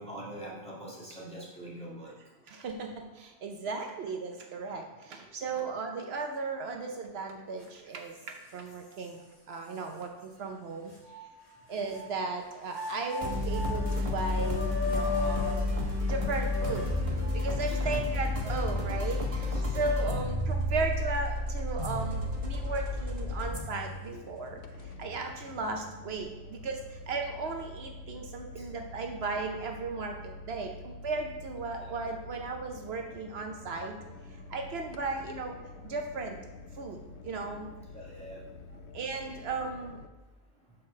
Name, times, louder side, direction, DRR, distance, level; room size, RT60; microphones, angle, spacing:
voice 1, 0.0-2.1 5.5-5.7 17.7-18.0 19.5-20.3 24.1-24.2 28.6-28.7 31.7-32.0 37.9-38.4, right 1 dB, 5° left, -7 dB, 2.0 m, -44 dB
voice 2, 2.5-8.2 8.5-10.9 11.7-15.7 16.0-16.9 17.3-34.0 34.3-35.6 35.8-36.4 36.7-37.7 38.9-40.0, right 3 dB, 70° right, 3 dB, 0.9 m, -36 dB
sound 1, 7.6-7.7 8.2-9.1 9.7-9.8 10.9-12.1 12.6-17.5, left 3 dB, 35° left, 2.1 m, -37 dB
sound 2, 13.2-26.6, left 2 dB, 35° right, 1.2 m, -32 dB
sound 3, 21.9-40.1, left 2 dB, 80° left, 0.8 m, -47 dB
5.8 x 4.5 x 6.4 m, 1.1 s
omnidirectional pair, 1.1 m